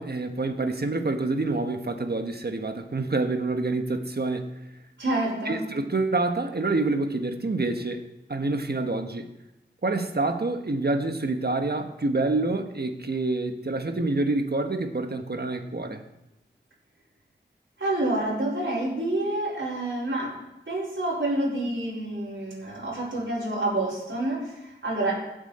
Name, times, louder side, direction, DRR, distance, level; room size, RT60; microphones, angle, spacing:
voice 1, 0.0-4.5 5.4-8.0 8.3-9.3 9.8-16.0, right 2 dB, 55° right, 6 dB, 1.3 m, -27 dB
voice 2, 5.0-5.6 17.8-20.4 20.7-25.2, right 1 dB, 75° right, -8 dB, 4.8 m, -28 dB
16.5 x 7.8 x 4.3 m, 0.92 s
wide cardioid pair, 40°, 19 cm